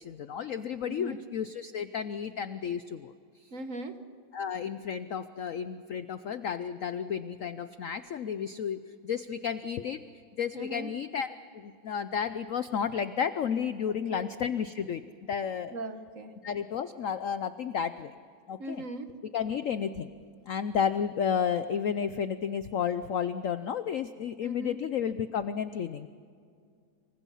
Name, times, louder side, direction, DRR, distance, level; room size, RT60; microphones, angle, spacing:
voice 1, 0.0-3.5 4.3-10.0 10.4-15.0 15.3-15.7 16.4-18.1 18.5-18.8 19.3-20.1 20.5-26.1, left 7 dB, 70° left, 12 dB, 0.7 m, -32 dB
voice 2, 0.8-1.2 3.5-4.0 10.5-10.9 14.1-14.3 15.7-16.3 18.6-19.1 24.4-24.8, right 2 dB, 45° right, 8 dB, 1.5 m, -39 dB
27.5 x 24.5 x 5.6 m, 2.3 s
omnidirectional pair, 2.1 m